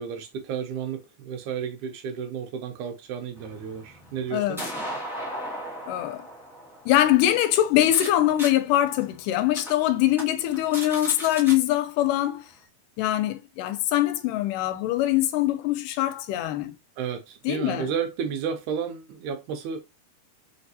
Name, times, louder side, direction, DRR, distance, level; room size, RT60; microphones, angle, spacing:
voice 1, 0.0-4.7 17.0-19.8, right 7 dB, 80° right, 2.0 m, -32 dB
sound 1, 3.4-8.1 8.4-8.5 9.0-9.1 9.6-9.7 10.1-10.2 10.5-11.6, equal, 5° right, 0.4 m, -36 dB
voice 2, 5.9-6.3 6.9-12.5 13.0-16.7 17.5-17.9, left 13 dB, 85° left, 2.1 m, -23 dB
4.6 x 3.4 x 2.7 m
omnidirectional pair, 3.8 m